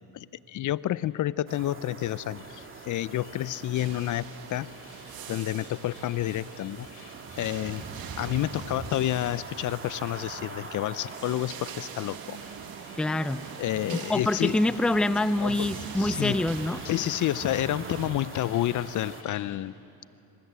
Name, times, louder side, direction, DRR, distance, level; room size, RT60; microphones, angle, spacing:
voice 1, 0.1-4.7 5.3-6.9 7.4-7.8 8.2-12.4 13.6-14.6 15.4-15.7 15.9-16.4 16.8-19.7, left 13 dB, 50° left, 18 dB, 0.6 m, -29 dB
sound 1, 1.5-19.2, right 4 dB, 30° right, 2.2 m, -43 dB
sound 2, 2.3-19.6, left 8 dB, 70° left, 3.5 m, -53 dB
sound 3, 3.7-18.1, right 9 dB, 60° right, 1.7 m, -44 dB
voice 2, 13.0-13.4 13.9-16.8, left 1 dB, ahead, 14 dB, 0.5 m, -26 dB
26.0 x 26.0 x 8.2 m, 2.9 s
cardioid pair, 105°, 40 cm